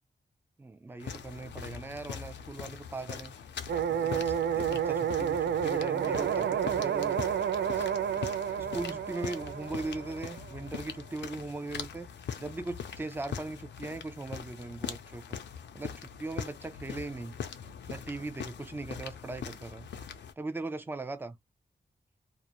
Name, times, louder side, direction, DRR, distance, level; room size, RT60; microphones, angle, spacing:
voice 1, 0.6-3.3 3.9-7.2 7.7-7.9 8.6-12.1 12.4-15.4 15.7-17.4 17.9-19.9 20.4-21.4, right 2 dB, 10° right, 0.4 m, -39 dB
sound 1, 1.0-20.3, left 7 dB, 85° left, 0.5 m, -42 dB
sound 2, 3.7-10.6, right 8 dB, 80° right, 0.4 m, -30 dB
2.4 x 2.1 x 2.8 m
wide cardioid pair, 140°, 18 cm